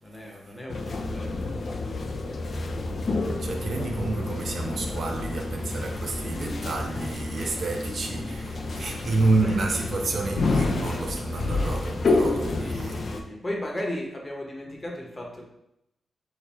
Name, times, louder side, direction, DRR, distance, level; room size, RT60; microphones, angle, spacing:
voice 1, 0.0-1.4 9.4-9.6 12.6-15.4, left 1 dB, 25° left, 1.1 m, -35 dB
sound 1, 0.7-13.2, left 3 dB, 55° left, 0.5 m, -29 dB
voice 2, 3.4-13.1, right 3 dB, 60° right, 0.7 m, -29 dB
4.4 x 3.3 x 3.5 m
cardioid pair, 85°, 0 cm